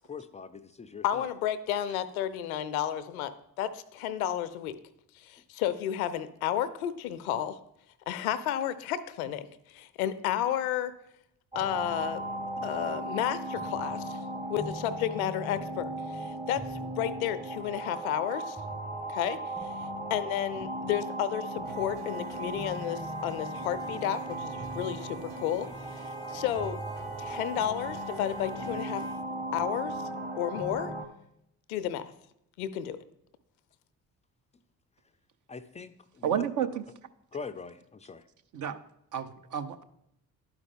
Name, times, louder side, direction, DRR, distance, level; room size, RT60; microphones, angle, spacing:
voice 1, 0.1-1.3 35.5-36.5 37.3-38.3, left 5 dB, 15° left, 10 dB, 0.4 m, -42 dB
voice 2, 1.0-4.8 5.2-7.6 8.1-10.9 11.5-12.3 12.6-14.2 14.5-18.6 19.1-19.8 20.1-26.8 27.2-29.0 29.5-30.0 30.4-30.9 31.7-32.0 32.6-33.0, left 10 dB, 80° left, 14 dB, 0.5 m, -32 dB
sound 1, 11.5-31.1, right 1 dB, 20° right, 1.1 m, -37 dB
sound 2, 21.6-29.1, right 4 dB, 65° right, 2.0 m, -47 dB
voice 3, 36.2-36.8 38.5-38.8 39.1-39.8, right 9 dB, 45° right, 10 dB, 0.7 m, -31 dB
11.5 x 4.8 x 3.6 m, 0.78 s
figure-of-eight pair, 45°, 42 cm